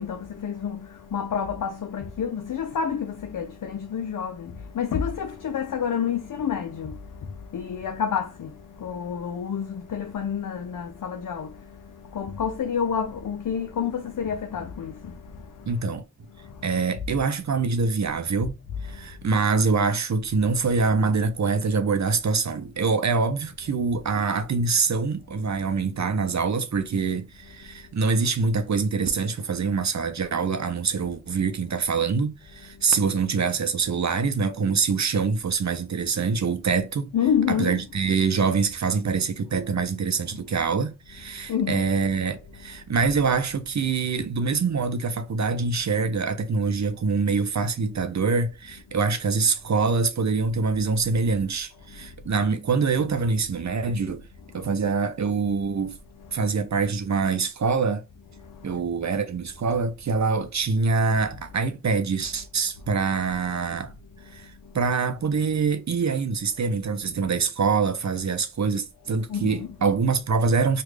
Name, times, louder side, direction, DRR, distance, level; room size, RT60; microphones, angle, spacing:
voice 1, 0.0-7.0 7.5-8.5 8.8-11.5 12.1-15.1 37.1-37.8 41.5-41.9 69.3-69.7, left 7 dB, 75° left, 0.5 m, -28 dB
voice 2, 15.7-16.0 16.6-18.6 18.8-37.1 37.5-54.2 54.5-56.0 56.3-58.0 58.6-63.9 64.3-70.8, right 4 dB, 60° right, 0.5 m, -25 dB
3.2 x 2.4 x 3.2 m
cardioid pair, 45°, 32 cm